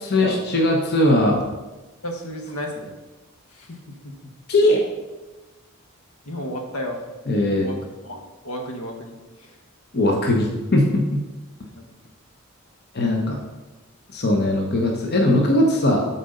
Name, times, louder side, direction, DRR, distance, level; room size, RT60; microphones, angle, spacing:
voice 1, 0.1-1.4 4.5-4.8 7.3-7.7 9.9-11.2 12.9-13.4 14.1-16.0, left 1 dB, 50° left, 1 dB, 1.0 m, -19 dB
voice 2, 2.0-2.9 3.5-4.1 6.2-7.0 7.6-7.8 8.0-9.6 11.7-11.9, left 1 dB, 85° left, 2 dB, 1.4 m, -33 dB
7.5 x 4.2 x 6.6 m, 1.2 s
head